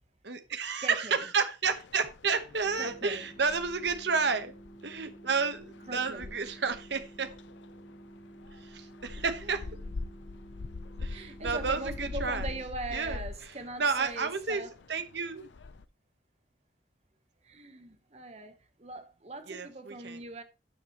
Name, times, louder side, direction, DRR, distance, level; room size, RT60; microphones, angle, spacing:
voice 1, 0.2-4.5 4.8-7.3 8.6-9.6 11.0-12.5 12.9-13.2 13.8-14.6 14.9-15.5 19.5-20.2, right 5 dB, 65° right, 1.2 m, -31 dB
voice 2, 0.8-1.3 2.8-3.3 5.9-6.3 9.2-9.6 11.1-14.7 17.4-20.4, right 2 dB, 35° right, 1.1 m, -41 dB
sound 1, 1.6-15.8, left 3 dB, 75° left, 0.5 m, -44 dB
sound 2, 2.6-12.6, right 1 dB, 20° left, 1.3 m, -51 dB
12.0 x 7.2 x 3.1 m
head